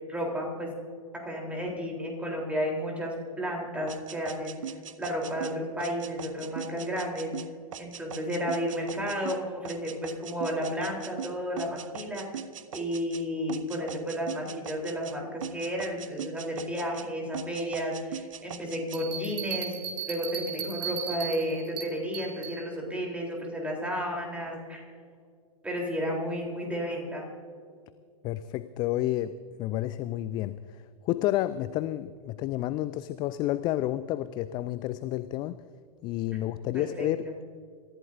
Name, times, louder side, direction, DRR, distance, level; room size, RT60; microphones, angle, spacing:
voice 1, 0.1-0.7 1.2-4.6 5.0-7.3 7.8-12.2 12.7-24.8 25.6-27.3 36.7-37.1, equal, 5° right, -1 dB, 3.8 m, -32 dB
sound 1, 3.9-13.2 13.5-15.2 15.4-17.1 17.3-19.0, right 8 dB, 60° right, 0.7 m, -40 dB
sound 2, 18.9-22.6, right 7 dB, 25° right, 2.3 m, -36 dB
voice 2, 28.2-35.6 36.0-37.3, left 14 dB, 25° left, 14 dB, 0.4 m, -30 dB
27.0 x 14.5 x 2.7 m, 2.2 s
figure-of-eight pair, 100°, 19 cm